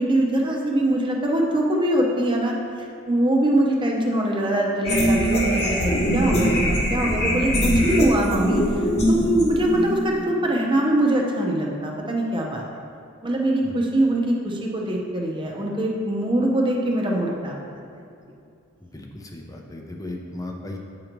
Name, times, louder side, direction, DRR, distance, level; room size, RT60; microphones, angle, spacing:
voice 1, 0.0-2.5 3.1-8.6 9.1-12.6 13.2-17.6, right 1 dB, 25° right, -1 dB, 0.8 m, -23 dB
sound 1, 4.8-10.2, equal, 35° left, 1.2 m, -22 dB
voice 2, 18.8-20.8, left 1 dB, 15° left, 0 dB, 0.6 m, -36 dB
8.3 x 3.0 x 5.2 m, 2.5 s
head